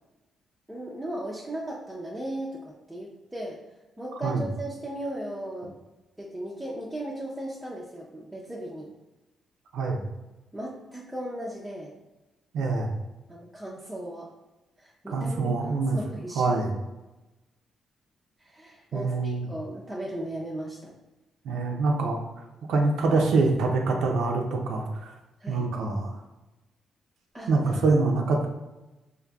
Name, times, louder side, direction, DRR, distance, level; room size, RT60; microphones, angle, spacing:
voice 1, 0.7-3.6 4.0-5.7 6.2-8.9 10.5-12.0 13.3-14.3 14.8-16.6 18.4-20.9 25.4-25.7 27.3-27.8, right 1 dB, 10° right, -5 dB, 0.4 m, -37 dB
voice 2, 12.5-12.9 15.1-16.0 16.4-16.7 18.9-19.5 21.4-22.3 22.7-25.1 25.5-26.2 27.5-28.5, right 3 dB, 85° right, 1 dB, 0.4 m, -25 dB
3.7 x 2.6 x 2.3 m, 1.0 s
cardioid pair, 115°, 0 cm